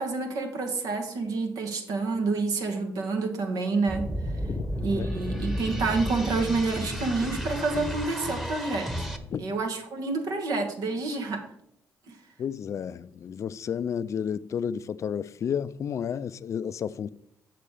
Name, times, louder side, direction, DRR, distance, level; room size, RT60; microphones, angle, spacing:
voice 1, 0.0-4.1 4.8-9.1 9.4-11.5 12.1-12.2, right 3 dB, 65° right, 1.6 m, -28 dB
sound 1, 3.9-9.2, equal, 5° right, 1.3 m, -32 dB
voice 2, 12.4-17.1, left 8 dB, 50° left, 0.4 m, -31 dB
6.8 x 6.0 x 5.0 m
hypercardioid pair, 55°, 6 cm